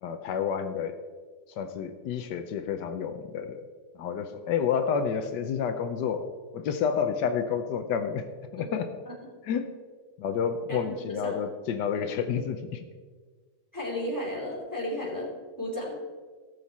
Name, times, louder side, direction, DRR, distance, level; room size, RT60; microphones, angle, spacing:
voice 1, 0.0-1.0 1.5-3.6 3.9-6.3 6.5-8.2 8.5-8.9 9.4-9.7 10.2-12.8, left 7 dB, 85° left, 7 dB, 1.4 m, -29 dB
voice 2, 13.7-15.3 15.6-15.9, left 1 dB, 10° left, -4 dB, 3.1 m, -33 dB
17.0 x 6.7 x 4.2 m, 1.5 s
omnidirectional pair, 1.8 m